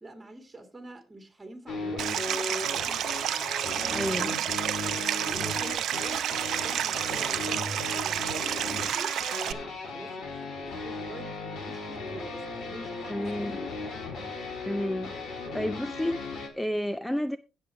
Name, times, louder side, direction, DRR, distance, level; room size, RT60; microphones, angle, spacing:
voice 1, 0.0-3.0 4.2-4.6 4.8-9.2 9.4-13.7, right 2 dB, 15° right, 2.5 m, -46 dB
Is it D Sharp G Sharp or F Sharp, 1.7-16.5, left 3 dB, 65° left, 3.4 m, -37 dB
Stream, 2.0-9.5, right 10 dB, 75° right, 0.6 m, -30 dB
voice 2, 3.9-4.4 13.1-13.6 14.7-15.1 15.5-17.4, left 1 dB, 5° left, 0.5 m, -31 dB
16.0 x 6.8 x 3.4 m
cardioid pair, 90°, 0 cm